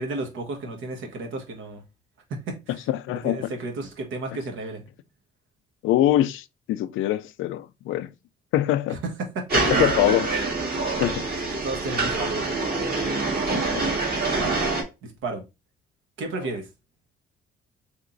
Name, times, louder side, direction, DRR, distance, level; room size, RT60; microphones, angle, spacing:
voice 1, 0.0-1.8 2.3-2.8 3.1-4.8 8.9-9.6 10.0-10.1 11.4-12.7 14.3-14.6 15.0-15.4 16.2-16.7, right 3 dB, 80° right, 1.3 m, -33 dB
voice 2, 2.9-3.5 5.8-8.1 8.5-9.0 9.5-10.3 11.0-11.3 13.5-13.8, left 13 dB, 85° left, 0.4 m, -24 dB
sound 1, 9.5-14.8, right 3 dB, 50° right, 1.8 m, -25 dB
3.5 x 3.0 x 3.8 m
cardioid pair, 90°, 20 cm